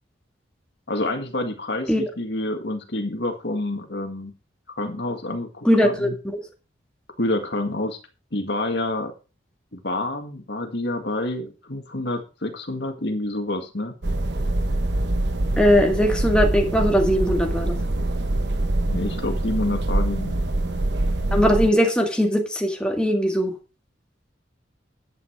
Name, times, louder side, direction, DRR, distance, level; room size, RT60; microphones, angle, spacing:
voice 1, 0.9-4.3 4.7-6.2 7.2-8.0 8.3-9.1 9.7-14.0 18.9-20.3, left 2 dB, 60° left, 4 dB, 1.9 m, -28 dB
voice 2, 5.7-6.4 15.6-17.7 21.3-23.5, equal, 5° left, 2 dB, 1.8 m, -20 dB
sound 1, 14.0-21.7, right 1 dB, 60° right, 1.0 m, -24 dB
11.0 x 8.5 x 4.6 m, 0.32 s
head